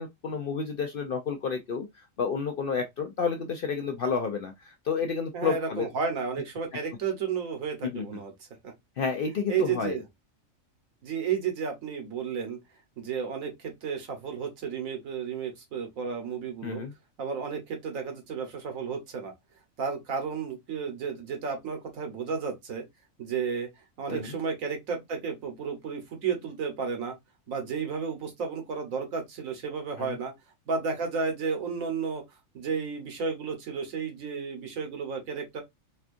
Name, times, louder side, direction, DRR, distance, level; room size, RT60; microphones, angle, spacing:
voice 1, 0.0-5.9 7.9-8.2 9.0-10.0 16.6-16.9 24.1-24.4 30.0-30.2, left 5 dB, 60° left, 0.6 m, -30 dB
voice 2, 5.3-8.3 8.6-8.7 9.5-10.0 11.0-12.6 13.0-16.8 17.2-19.3 19.8-22.8 23.2-23.7 24.0-27.1 27.5-30.3 30.7-32.2 32.5-35.6, right 6 dB, 80° right, 1.5 m, -32 dB
4.3 x 2.4 x 2.5 m
omnidirectional pair, 1.4 m